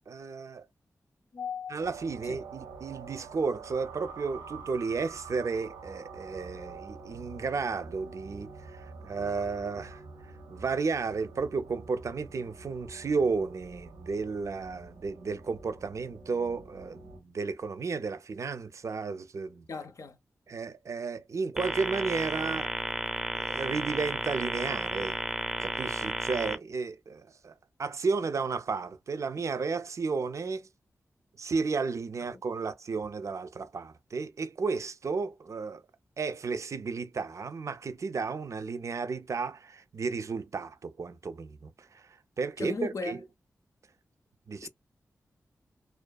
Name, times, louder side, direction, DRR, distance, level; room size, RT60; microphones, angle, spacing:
voice 1, 0.1-0.7 1.7-10.0 10.5-19.6 20.5-22.7 23.3-25.2 25.6-27.5 27.8-30.7 31.4-35.8 36.2-43.2 44.5-44.7, right 4 dB, 55° right, 0.4 m, -33 dB
voice 2, 1.3-1.8 2.3-2.4 19.7-20.2 42.6-43.2 44.6-44.7, left 4 dB, 60° left, 0.4 m, -36 dB
sound 1, 1.8-17.2, right 4 dB, 85° right, 0.7 m, -47 dB
sound 2, 21.6-26.6, equal, 5° right, 0.5 m, -33 dB
2.4 x 2.2 x 2.2 m
cardioid pair, 45°, 6 cm